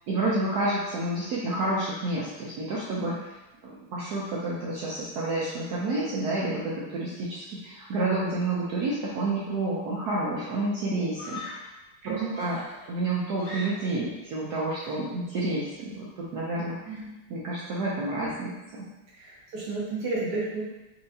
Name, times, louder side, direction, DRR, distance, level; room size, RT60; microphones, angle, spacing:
voice 1, 0.1-3.3 3.6-11.7 12.0-12.6 12.9-17.0 17.3-18.9, right 2 dB, 85° right, -6 dB, 0.8 m, -29 dB
Screaming, 9.8-10.1 11.1-11.8 12.3-14.1, left 2 dB, 90° left, 2.0 m, -41 dB
voice 2, 12.0-12.4 16.8-17.1 19.2-20.6, right 3 dB, 65° right, -5 dB, 1.1 m, -32 dB
4.2 x 2.8 x 2.7 m, 1.0 s
omnidirectional pair, 2.4 m